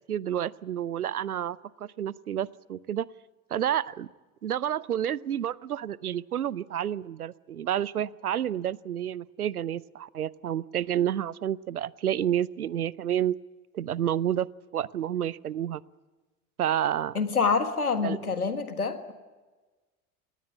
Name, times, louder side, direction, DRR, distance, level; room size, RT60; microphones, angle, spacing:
voice 1, 0.1-3.1 3.5-4.1 4.4-13.4 13.7-15.8 16.6-17.2 18.0-18.3, right 10 dB, 85° right, 23 dB, 0.6 m, -30 dB
voice 2, 17.2-19.0, left 5 dB, 90° left, 9 dB, 1.7 m, -26 dB
19.0 x 18.5 x 9.5 m, 1.3 s
figure-of-eight pair, 70°, 43 cm